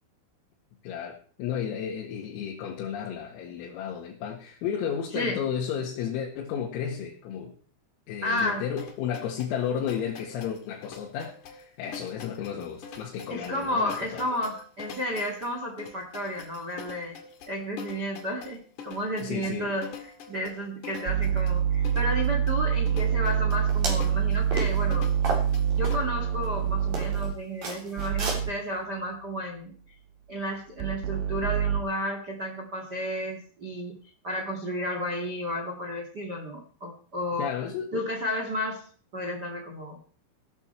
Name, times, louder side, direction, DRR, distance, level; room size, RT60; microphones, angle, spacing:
voice 1, 0.8-7.5 8.1-14.3 19.2-19.7 37.4-37.9, left 8 dB, 85° left, -1 dB, 4.4 m, -33 dB
voice 2, 8.2-8.6 13.3-17.2 17.5-19.9 20.3-25.1 25.7-29.7 30.3-33.9 34.2-37.5 37.9-38.8 39.1-40.0, equal, 65° right, 2 dB, 1.0 m, -32 dB
sound 1, 8.4-26.0, left 5 dB, 50° left, 2.6 m, -44 dB
sound 2, 21.1-27.3 28.0-28.5 30.8-31.8, right 8 dB, 90° right, 2.2 m, -26 dB
sound 3, 23.7-24.1 24.5-24.8 25.2-25.9 26.4-26.5 26.9-27.3 27.6-28.4, right 3 dB, 45° right, 4.9 m, -32 dB
16.5 x 12.5 x 4.5 m, 0.44 s
omnidirectional pair, 6.0 m